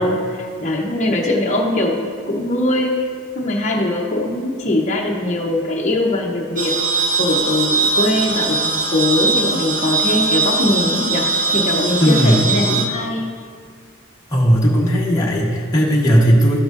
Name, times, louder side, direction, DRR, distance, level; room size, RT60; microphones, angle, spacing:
voice 1, 0.0-2.0 2.3-3.1 3.3-6.8 7.2-11.3 11.5-13.3, left 1 dB, 35° left, -3 dB, 0.9 m, -21 dB
sound 1, 6.6-12.8, right 3 dB, 40° right, 0.9 m, -20 dB
voice 2, 12.0-12.5 14.3-16.6, equal, 15° left, -5 dB, 1.1 m, -15 dB
12.5 x 7.8 x 2.6 m, 2.1 s
head